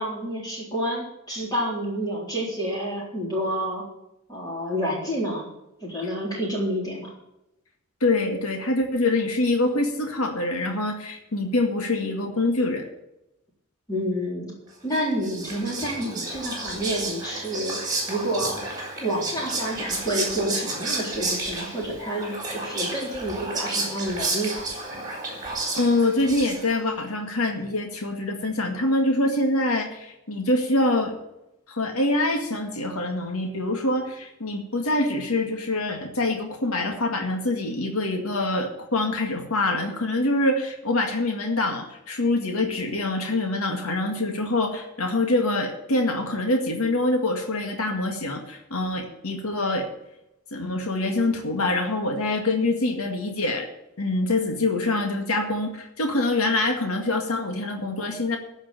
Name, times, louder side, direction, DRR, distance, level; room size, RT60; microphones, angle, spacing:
voice 1, 0.0-3.8 4.3-5.5 5.8-7.1 13.9-14.5 14.8-17.8 18.1-18.6 19.0-24.6, equal, 20° left, -4 dB, 3.8 m, -29 dB
voice 2, 8.0-12.9 25.8-31.2 31.7-49.9 50.5-53.7 54.0-58.4, left 2 dB, 90° left, 3 dB, 1.9 m, -25 dB
Whispering, 14.9-26.9, right 2 dB, 20° right, 4.1 m, -31 dB
14.5 x 5.3 x 8.8 m, 0.87 s
head